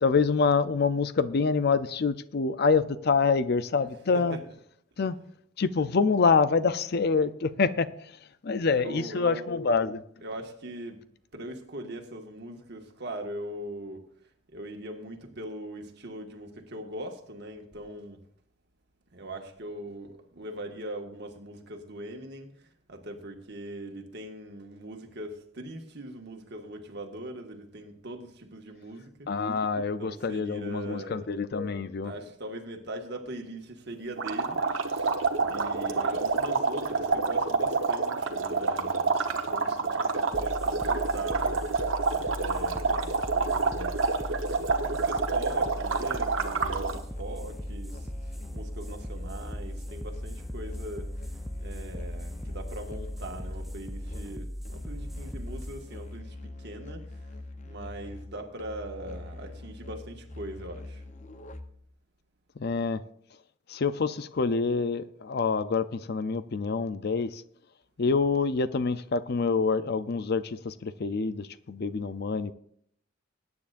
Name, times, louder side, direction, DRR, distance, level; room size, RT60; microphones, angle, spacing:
voice 1, 0.0-4.4 5.0-5.2 5.6-7.9 8.4-10.0 29.3-32.1 62.6-63.0 63.7-67.4 68.0-72.5, left 4 dB, 55° left, 0.5 m, -26 dB
voice 2, 3.8-4.4 8.6-9.7 10.2-11.0 11.3-14.0 14.5-18.2 19.1-29.3 30.0-31.4 31.6-44.0 44.8-51.3 51.6-57.3 57.7-61.0, right 1 dB, 60° right, 1.8 m, -41 dB
sound 1, 34.2-47.0, right 4 dB, 80° right, 1.2 m, -28 dB
sound 2, 40.3-57.4, equal, ahead, 0.4 m, -39 dB
Musical instrument, 46.6-61.9, left 2 dB, 40° left, 0.9 m, -43 dB
21.0 x 9.6 x 2.6 m
head